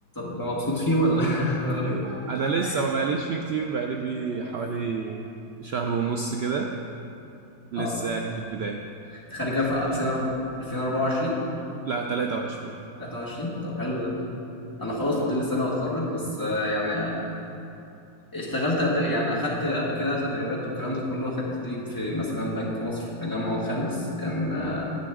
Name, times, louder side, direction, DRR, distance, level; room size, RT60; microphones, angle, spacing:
voice 1, 0.1-2.7 4.3-4.6 7.7-8.0 9.3-11.4 13.0-14.2 14.8-17.3 18.3-24.9, left 1 dB, 15° left, -7 dB, 1.7 m, -27 dB
voice 2, 2.3-5.3 5.6-6.8 7.7-8.8 9.9-10.0 11.9-12.8 17.2-17.3, right 5 dB, 85° right, 2 dB, 0.5 m, -28 dB
11.0 x 8.6 x 3.6 m, 2.7 s
omnidirectional pair, 1.7 m